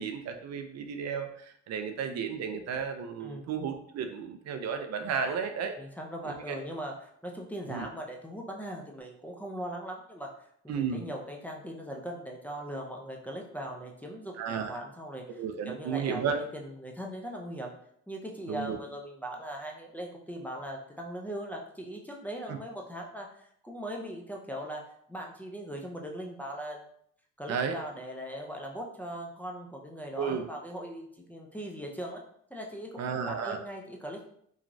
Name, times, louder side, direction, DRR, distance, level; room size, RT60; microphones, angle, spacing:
voice 1, 0.0-5.8 6.3-6.6 7.7-7.9 10.7-11.1 14.4-14.8 15.4-16.4 18.5-18.8 22.5-22.6 27.5-27.8 30.2-30.5 33.0-33.6, right 6 dB, 60° right, 6 dB, 0.4 m, -33 dB
voice 2, 5.8-7.0 7.2-10.3 10.6-17.7 18.1-24.8 25.1-26.8 27.4-32.2 32.5-34.3, equal, 5° left, 0 dB, 0.4 m, -40 dB
3.0 x 2.3 x 2.5 m, 0.67 s
cardioid pair, 90°, 30 cm